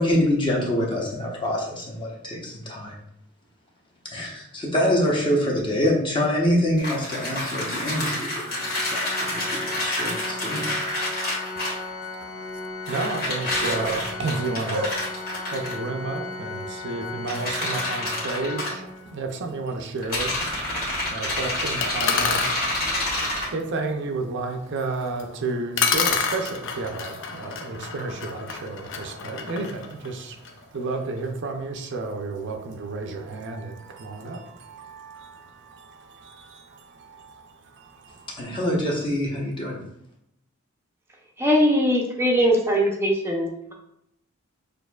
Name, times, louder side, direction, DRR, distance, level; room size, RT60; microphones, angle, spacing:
voice 1, 0.0-2.9 4.1-9.3 9.8-10.6 38.4-39.8, equal, 25° left, -3 dB, 0.9 m, -25 dB
sound 1, 6.8-11.9 12.9-15.7 17.3-18.7 20.0-23.5, left 1 dB, 45° left, 1.5 m, -28 dB
Organ, 8.5-19.4, left 3 dB, 75° left, 1.5 m, -36 dB
voice 2, 12.0-15.0 15.5-20.6 21.0-38.4, right 3 dB, 55° right, 4 dB, 0.5 m, -32 dB
sound 2, 21.8-22.6 25.2-25.3 25.8-30.6, left 6 dB, 60° left, 0.5 m, -28 dB
voice 3, 41.4-43.7, equal, 10° right, -1 dB, 0.6 m, -21 dB
6.4 x 2.6 x 2.3 m, 0.77 s
head